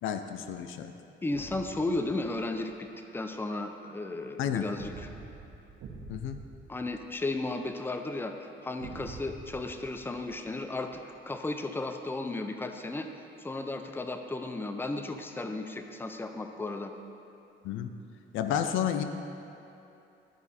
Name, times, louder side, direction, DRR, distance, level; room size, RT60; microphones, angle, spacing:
voice 1, 0.0-0.9 4.4-4.7 6.1-6.4 17.6-17.9 18.3-19.0, left 9 dB, 80° left, 8 dB, 0.5 m, -31 dB
voice 2, 1.2-2.9 3.1-5.1 6.7-13.1 13.4-16.9, left 2 dB, 10° left, 6 dB, 0.5 m, -34 dB
sound 1, 1.3-2.7 4.8-7.7 8.8-11.0, right 4 dB, 80° right, 1.1 m, -47 dB
12.5 x 4.8 x 4.2 m, 2.8 s
cardioid pair, 90°, 20 cm